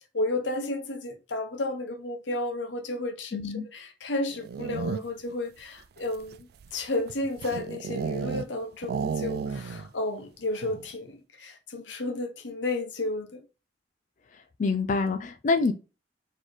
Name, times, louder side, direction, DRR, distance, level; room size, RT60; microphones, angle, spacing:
voice 1, 0.1-13.4, left 2 dB, 90° left, 1.0 m, -32 dB
voice 2, 3.3-3.6 14.3-15.7, left 4 dB, 45° left, 0.4 m, -26 dB
sound 1, 4.3-5.3 6.0-8.5 8.8-9.9 10.2-10.3 10.6-10.9, right 5 dB, 60° right, 0.3 m, -33 dB
4.3 x 3.1 x 3.1 m
head